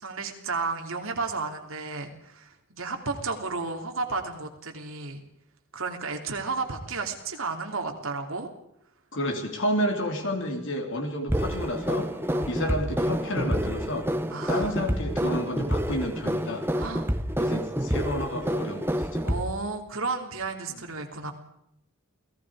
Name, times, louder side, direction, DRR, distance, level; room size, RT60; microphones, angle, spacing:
voice 1, 0.0-5.2 5.7-8.5 10.2-10.3 12.3-12.5 14.3-14.7 16.7-17.1 19.2-21.3, right 4 dB, 65° right, 3 dB, 3.1 m, -33 dB
voice 2, 9.1-12.1 12.5-14.1 14.5-16.7 17.4-19.3, equal, 60° left, 3 dB, 3.6 m, -30 dB
sound 1, 11.3-19.5, equal, 10° right, 1.1 m, -28 dB
28.5 x 19.0 x 4.9 m, 0.78 s
head